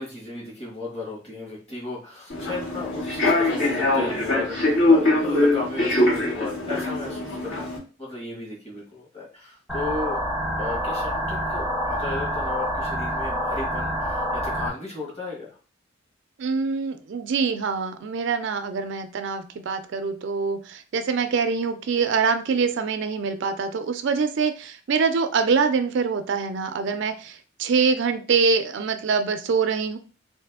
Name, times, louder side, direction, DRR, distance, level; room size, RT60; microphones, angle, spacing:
voice 1, 0.0-7.7 8.0-10.2 10.6-15.6, left 3 dB, 30° left, -5 dB, 1.8 m, -35 dB
Human voice / Subway metro underground, 2.3-7.8, left 2 dB, 70° left, 2.0 m, -22 dB
sound 1, 9.7-14.7, equal, ahead, 0.6 m, -27 dB
voice 2, 16.4-30.0, right 5 dB, 60° right, 8 dB, 0.4 m, -24 dB
3.3 x 2.6 x 3.6 m, 0.37 s
head